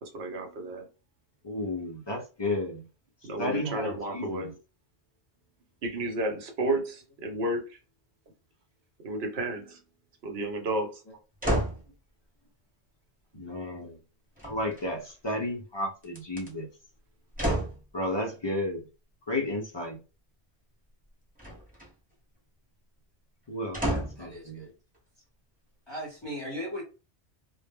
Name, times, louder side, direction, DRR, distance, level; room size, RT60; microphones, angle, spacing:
voice 1, 0.0-0.9 3.2-4.5 5.8-7.8 9.0-9.8 10.2-10.9, right 1 dB, 70° right, 1.0 m, -32 dB
voice 2, 1.4-2.8 3.4-4.5 13.3-14.0 14.4-16.7 17.9-18.9 19.3-20.0 23.5-24.7, left 1 dB, 45° left, 0.3 m, -32 dB
sound 1, 11.4-11.9 14.4-15.1 16.0-16.5 17.3-17.8 21.4-21.9 23.7-24.3 24.9-25.0, right 1 dB, 10° right, 0.9 m, -30 dB
voice 3, 24.2-24.7 25.9-26.8, equal, 25° left, 0.8 m, -38 dB
2.1 x 2.0 x 3.3 m
omnidirectional pair, 1.2 m